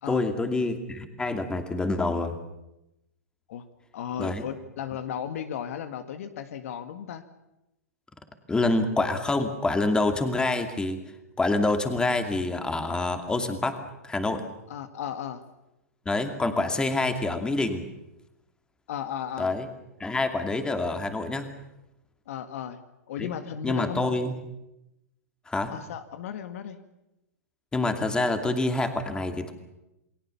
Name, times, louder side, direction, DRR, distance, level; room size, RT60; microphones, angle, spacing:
voice 1, 0.1-2.4 4.2-4.5 8.5-11.0 11.4-13.8 14.0-14.4 16.1-17.8 19.4-19.7 20.0-21.5 23.2-23.3 23.6-24.4 25.5-25.7 27.7-29.5, left 2 dB, 10° left, 7 dB, 2.6 m, -26 dB
voice 2, 3.9-7.2 14.7-15.4 18.9-19.6 22.3-22.8 23.1-24.0 25.7-26.8, left 9 dB, 60° left, 10 dB, 1.8 m, -35 dB
29.0 x 20.5 x 7.1 m, 0.93 s
hypercardioid pair, 120°, 9 cm